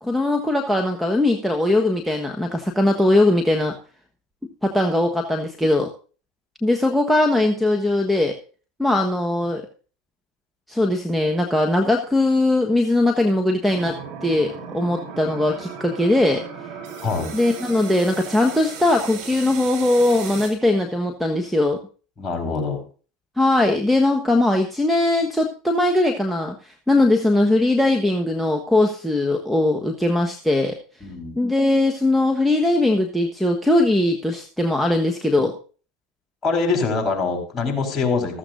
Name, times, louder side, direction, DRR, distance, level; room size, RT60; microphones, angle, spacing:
voice 1, 0.0-3.8 4.6-5.9 6.6-8.4 8.8-9.6 10.7-16.4 17.3-21.8 23.4-30.8 31.4-35.5, left 2 dB, ahead, 1 dB, 1.4 m, -20 dB
sound 1, 13.7-20.5, right 6 dB, 65° right, 4.0 m, -36 dB
voice 2, 17.0-17.3 22.2-22.8 31.0-31.4 36.4-38.4, left 4 dB, 30° left, 3 dB, 4.4 m, -24 dB
15.0 x 14.0 x 2.6 m, 0.38 s
hypercardioid pair, 80°, 0 cm